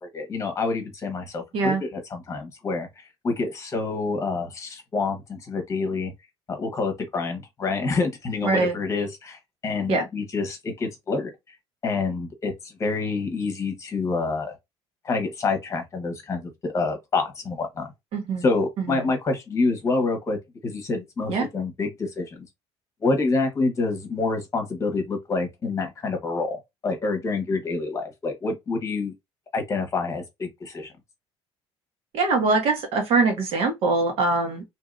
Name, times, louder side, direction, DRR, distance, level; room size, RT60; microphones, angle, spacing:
voice 1, 0.0-6.1 6.5-11.3 11.8-14.6 15.0-17.9 18.4-20.4 20.6-22.4 23.0-29.1 29.5-30.9, left 3 dB, 30° left, 1.1 m, -27 dB
voice 2, 8.4-8.7 9.9-10.1 18.1-18.4 18.9-19.1 21.3-21.5 32.1-34.6, right 3 dB, 65° right, 1.3 m, -23 dB
2.7 x 2.7 x 2.4 m
cardioid pair, 135°, 11 cm